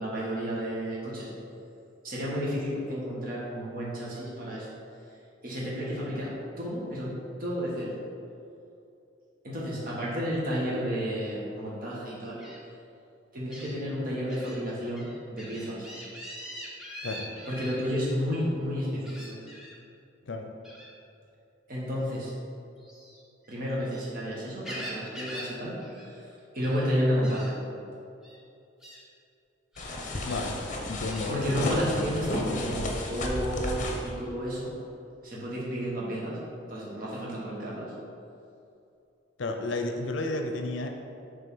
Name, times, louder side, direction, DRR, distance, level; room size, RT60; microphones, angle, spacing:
voice 1, 0.0-1.3 2.0-4.7 5.4-7.1 7.4-7.9 9.4-12.4 13.3-15.9 17.5-19.4 21.7-22.3 23.5-25.8 26.1-27.5 31.3-34.7 35.2-36.4 36.7-37.9, equal, 50° right, -6 dB, 1.3 m, -31 dB
Gull seagull, 12.4-12.6 13.5-13.7 14.3-14.6 14.9-17.8 19.0-19.7 20.6-20.9 22.8-24.0 24.4-25.5 25.8-26.1 26.4-26.9 27.2-27.5 28.2-28.4 28.8-29.0 29.7-30.4 31.1-31.3, equal, 5° right, 1.1 m, -43 dB
sound 1, 29.8-34.1, left 1 dB, 40° left, 0.8 m, -33 dB
voice 2, 30.3-30.6 30.9-32.2 32.5-33.0 39.4-40.9, left 2 dB, 75° left, 4 dB, 0.5 m, -33 dB
7.0 x 3.5 x 6.0 m, 2.6 s
head